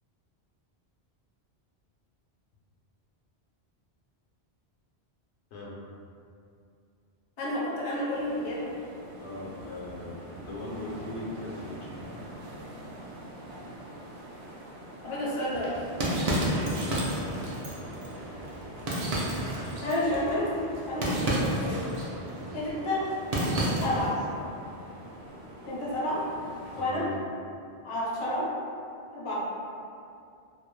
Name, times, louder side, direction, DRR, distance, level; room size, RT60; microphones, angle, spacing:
voice 1, 7.4-8.7 15.0-15.8 19.6-21.8 22.5-23.1 23.8-24.1 25.7-26.2 26.8-27.1 27.8-28.5 29.1-29.4, left 1 dB, 40° left, -6 dB, 0.4 m, -30 dB
sound 1, 8.1-26.9, right 1 dB, 75° right, 0.8 m, -45 dB
voice 2, 9.2-11.9 16.4-17.4 18.4-18.8 20.0-20.1 22.3-23.0 23.9-24.6 26.7-27.2, left 2 dB, 85° left, -5 dB, 0.9 m, -41 dB
sound 2, 15.5-24.2, right 1 dB, 55° right, 0.4 m, -31 dB
2.4 x 2.0 x 3.0 m, 2.5 s
omnidirectional pair, 1.1 m